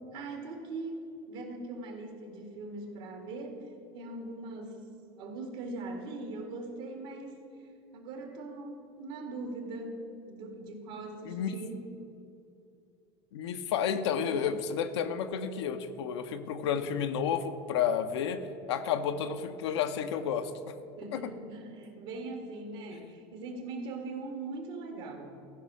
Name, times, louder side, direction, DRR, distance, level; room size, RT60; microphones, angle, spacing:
voice 1, 0.1-1.0 1.3-3.6 3.9-4.8 5.1-7.4 7.9-11.9 21.0-25.5, right 2 dB, 75° right, 3 dB, 2.1 m, -41 dB
voice 2, 11.2-11.5 13.3-18.4 18.7-20.5 21.1-21.2, left 8 dB, 85° left, 8 dB, 0.8 m, -31 dB
14.5 x 5.6 x 6.2 m, 2.7 s
supercardioid pair, 95°, 14 cm